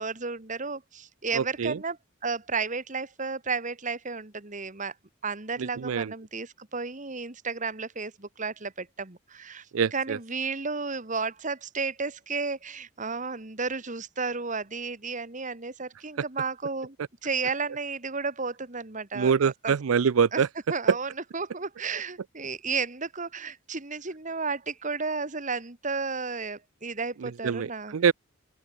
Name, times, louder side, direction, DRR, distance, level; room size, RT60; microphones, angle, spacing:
voice 1, 0.0-2.0 2.2-4.9 5.2-9.7 9.9-17.0 17.2-19.7 20.3-20.4 20.7-27.9, right 4 dB, 35° right, 2.0 m, -33 dB
voice 2, 1.3-1.8 5.6-6.1 9.7-10.2 19.1-20.5 20.9-21.0 27.2-28.1, right 6 dB, 85° right, 0.5 m, -25 dB
open air
head